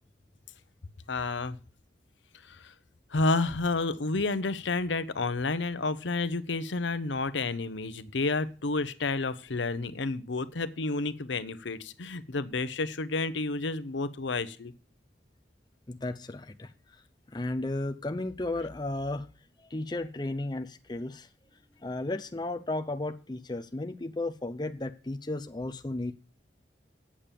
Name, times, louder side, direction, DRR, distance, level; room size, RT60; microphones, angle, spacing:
voice 1, 1.1-1.6 2.4-2.7 3.1-14.7, left 3 dB, 80° left, 0.8 m, -30 dB
voice 2, 15.9-17.0 17.3-19.3 19.6-26.1, left 2 dB, 25° left, 0.6 m, -34 dB
8.6 x 6.9 x 7.4 m
head